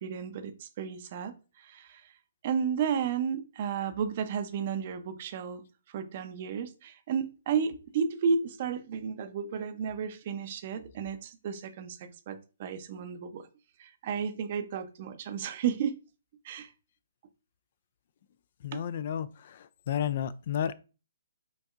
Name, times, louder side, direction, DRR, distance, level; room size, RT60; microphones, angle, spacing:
voice 1, 0.0-1.3 1.6-2.0 2.4-5.6 5.9-13.5 13.8-16.0 16.4-16.7, right 6 dB, 45° right, 0.6 m, -32 dB
voice 2, 18.6-20.7, left 9 dB, 50° left, 0.3 m, -32 dB
5.2 x 2.6 x 2.4 m
hypercardioid pair, 135°, 0 cm